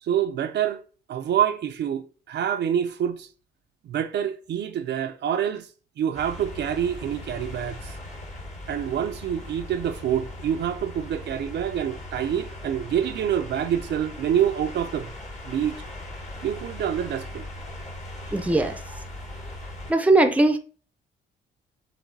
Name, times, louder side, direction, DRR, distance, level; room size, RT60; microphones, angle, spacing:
voice 1, 0.0-0.8 1.1-3.3 3.8-5.7 6.0-8.0 8.7-15.1 15.5-15.8 16.4-17.5, right 9 dB, 60° right, 0.5 m, -26 dB
sound 1, 6.1-19.9, left 1 dB, 35° left, 1.2 m, -39 dB
voice 2, 18.3-19.0 19.9-20.6, right 2 dB, 5° right, 0.6 m, -20 dB
7.1 x 2.7 x 2.6 m
cardioid pair, 90°, 20 cm